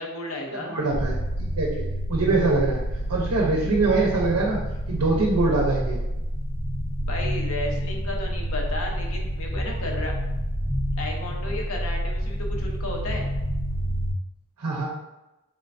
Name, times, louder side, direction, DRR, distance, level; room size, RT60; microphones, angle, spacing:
voice 1, 0.0-0.8 7.0-10.1 11.0-13.3, left 1 dB, 70° left, 0 dB, 0.8 m, -33 dB
voice 2, 0.7-4.6 4.9-6.0 14.6-14.9, right 3 dB, 85° right, -2 dB, 0.7 m, -24 dB
sound 1, 0.9-14.1, equal, 5° left, 0.6 m, -28 dB
3.7 x 3.3 x 2.6 m, 0.99 s
head